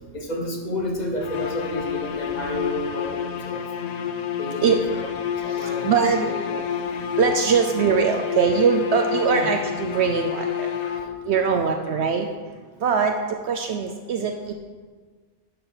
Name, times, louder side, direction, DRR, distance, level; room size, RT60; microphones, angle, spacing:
voice 1, 0.1-3.7 4.4-5.0 5.4-5.9 6.2-6.8 9.3-9.5 10.8-11.0, left 1 dB, 40° left, 1 dB, 1.1 m, -31 dB
sound 1, 1.2-11.4, left 9 dB, 70° left, 0.4 m, -29 dB
voice 2, 4.6-5.0 5.5-6.3 7.2-10.7 11.2-12.3 12.8-13.1 13.4-14.5, right 6 dB, 70° right, 4 dB, 0.9 m, -22 dB
11.0 x 4.0 x 5.5 m, 1.5 s
omnidirectional pair, 1.2 m